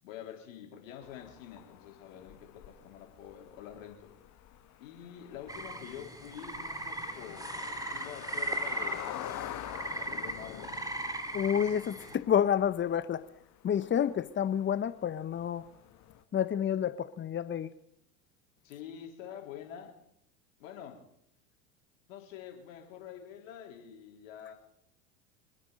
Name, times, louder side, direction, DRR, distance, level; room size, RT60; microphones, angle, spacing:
voice 1, 0.0-4.1 4.8-10.8 18.6-20.0 20.6-21.0 22.1-24.5, left 9 dB, 70° left, 1 dB, 3.8 m, -47 dB
sound 1, 1.0-16.2, left 11 dB, 40° left, 1.5 m, -47 dB
sound 2, 5.5-12.2, right 1 dB, 10° right, 2.0 m, -38 dB
voice 2, 11.3-13.2 13.6-15.6 16.3-17.7, left 9 dB, 25° left, 14 dB, 1.0 m, -29 dB
26.0 x 10.0 x 5.2 m, 0.75 s
hypercardioid pair, 85°, 41 cm